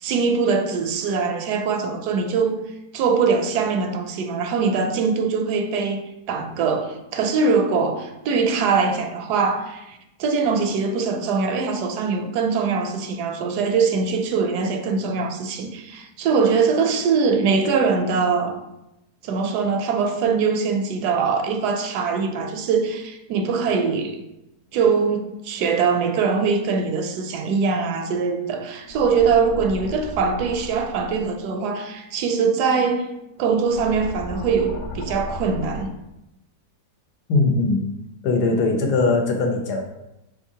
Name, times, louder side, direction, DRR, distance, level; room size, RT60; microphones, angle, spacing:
voice 1, 0.0-2.6 2.9-6.0 6.3-18.6 19.2-24.2 24.7-33.1 33.4-35.9, right 5 dB, 85° right, 1.1 m, -22 dB
sound 1, 28.8-31.3 33.4-35.9, left 1 dB, 70° left, 0.7 m, -35 dB
voice 2, 37.3-37.8 38.2-39.8, left 3 dB, 85° left, 1.3 m, -20 dB
4.5 x 3.7 x 2.8 m
omnidirectional pair, 1.7 m